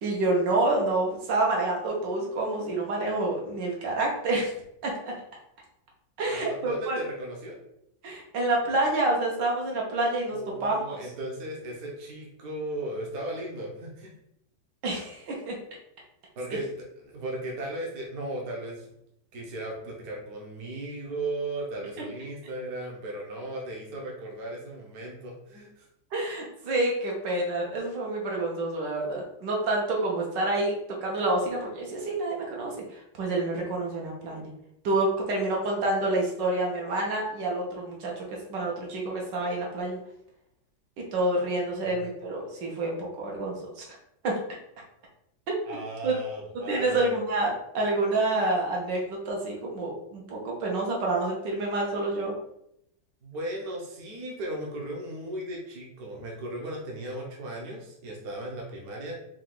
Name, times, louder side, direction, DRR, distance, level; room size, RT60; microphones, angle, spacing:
voice 1, 0.0-4.5 4.8-5.1 6.2-7.0 8.0-11.0 14.8-15.6 26.1-30.7 31.0-34.5 34.8-40.0 41.0-43.8 44.2-44.3 45.5-45.6 46.0-46.2 46.7-52.4, right 2 dB, 80° right, -1 dB, 1.7 m, -28 dB
voice 2, 6.3-7.6 10.3-14.1 16.4-16.7 17.0-18.9 19.3-25.9 41.1-41.2 41.8-42.1 45.6-47.2 53.2-59.1, right 1 dB, 60° right, -1 dB, 1.3 m, -36 dB
4.9 x 2.4 x 3.8 m, 0.77 s
omnidirectional pair, 1.9 m